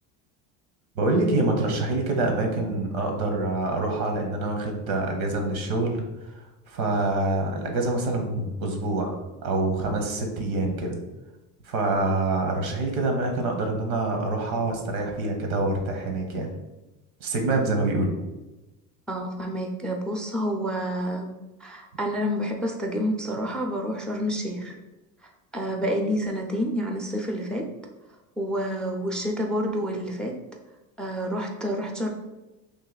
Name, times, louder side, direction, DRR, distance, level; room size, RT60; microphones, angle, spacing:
voice 1, 1.0-6.1 6.7-11.0 11.6-16.5 17.2-18.2, right 2 dB, 85° right, 3 dB, 1.0 m, -26 dB
voice 2, 19.1-21.3 21.6-24.7 25.5-27.6 28.4-30.3 31.0-32.1, equal, ahead, 2 dB, 0.4 m, -28 dB
3.2 x 2.6 x 3.9 m, 1.0 s
supercardioid pair, 90°, 41 cm